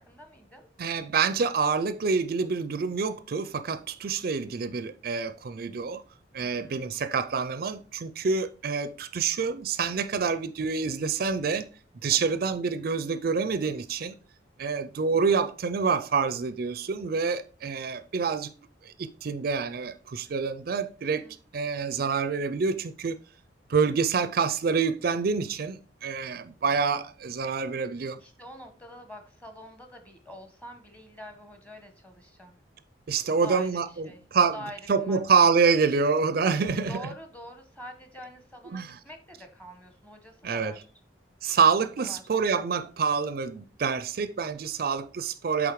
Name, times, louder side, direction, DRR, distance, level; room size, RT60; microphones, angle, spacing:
voice 1, 0.0-0.7 6.4-7.0 12.1-12.4 21.0-21.4 26.6-26.7 28.2-32.6 33.3-35.2 36.5-40.8 41.8-42.3, equal, 10° left, 1.2 m, -46 dB
voice 2, 0.8-6.0 6.3-11.7 12.0-14.1 14.6-18.5 18.8-21.2 21.5-23.2 23.7-28.2 33.1-34.6 34.9-37.0 38.7-39.0 40.4-40.8 41.4-45.7, right 5 dB, 55° right, 0.4 m, -27 dB
8.2 x 3.7 x 4.7 m
head